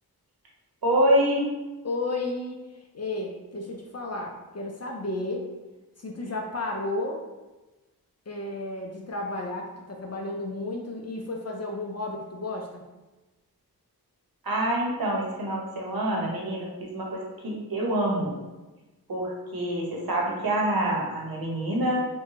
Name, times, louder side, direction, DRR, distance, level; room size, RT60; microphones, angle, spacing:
voice 1, 0.8-1.5 14.4-18.3 19.1-22.1, right 1 dB, 65° right, -2 dB, 0.8 m, -26 dB
voice 2, 1.8-5.5 6.0-7.2 8.3-12.8, left 2 dB, 45° left, 0 dB, 0.4 m, -33 dB
2.7 x 2.2 x 2.8 m, 1.1 s
cardioid pair, 40°, 38 cm